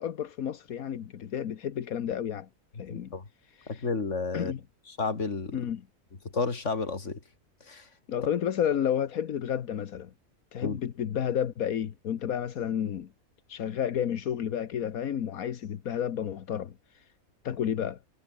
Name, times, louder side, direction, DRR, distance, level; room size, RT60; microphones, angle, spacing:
voice 1, 0.0-2.5 2.8-3.1 3.5-3.9 4.3-4.6 5.5-5.8 8.1-10.1 10.5-13.1 13.5-17.1 17.4-18.0, left 9 dB, 80° left, 1.5 m, -31 dB
voice 2, 2.9-3.2 3.7-4.5 4.9-5.6 6.3-7.2 7.7-7.9 10.6-10.8, left 4 dB, 55° left, 2.9 m, -31 dB
omnidirectional pair, 1.5 m